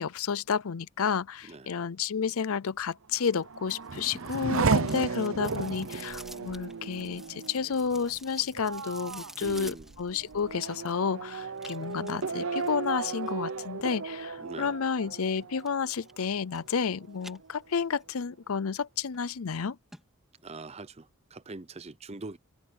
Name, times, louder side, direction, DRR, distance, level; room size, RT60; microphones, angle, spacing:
voice 1, 0.0-19.8, left 6 dB, 70° left, 0.6 m, -31 dB
Race car auto racing / Accelerating revving vroom, 3.1-16.4 16.8-17.5, right 4 dB, 60° right, 0.7 m, -34 dB
sound 1, 3.2-11.0 11.6-13.3 15.2-15.7 16.0-16.9 17.2-18.0 18.4-18.5 19.1-19.2 19.5-19.6 19.9-20.0 20.4-20.5, right 1 dB, ahead, 2.7 m, -50 dB
voice 2, 9.4-9.9 14.4-14.7 20.4-21.1 21.3-22.4, right 3 dB, 30° right, 0.7 m, -42 dB
head